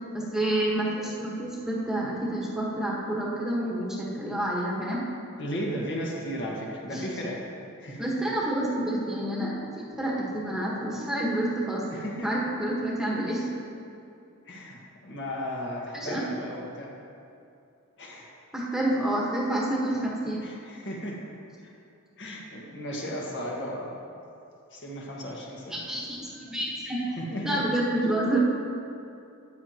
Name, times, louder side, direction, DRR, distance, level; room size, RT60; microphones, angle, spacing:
voice 1, 0.1-5.0 6.9-7.0 8.0-13.4 15.9-16.3 18.5-20.4 25.7-27.0 27.4-28.4, right 1 dB, 5° right, -5 dB, 1.3 m, -29 dB
voice 2, 5.4-7.4 7.8-8.0 11.9-12.3 14.5-16.9 18.0-18.3 20.4-21.2 21.6-21.7 22.2-24.0 24.7-25.8 27.2-27.7, equal, 55° left, -2 dB, 1.6 m, -35 dB
13.0 x 9.2 x 2.9 m, 2.6 s
head